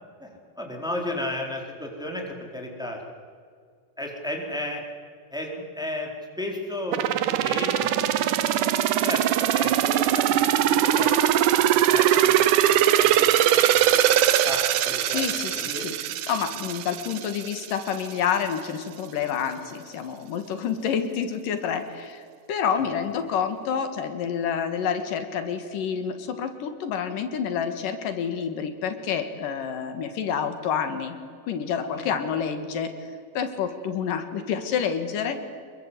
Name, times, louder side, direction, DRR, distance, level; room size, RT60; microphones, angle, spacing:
voice 1, 0.6-3.0 4.0-4.8 5.3-6.1 6.4-8.2 9.0-11.1 11.6-15.8 22.7-22.9 31.9-32.1, left 1 dB, ahead, 0 dB, 3.9 m, -34 dB
sound 1, 6.9-17.7 18.0-18.1, right 11 dB, 75° right, 2.5 m, -21 dB
voice 2, 15.0-15.9 16.3-22.2 22.5-31.2 31.5-32.9 33.3-35.4, left 7 dB, 80° left, 8 dB, 3.4 m, -28 dB
27.0 x 22.0 x 8.3 m, 2.2 s
omnidirectional pair, 3.8 m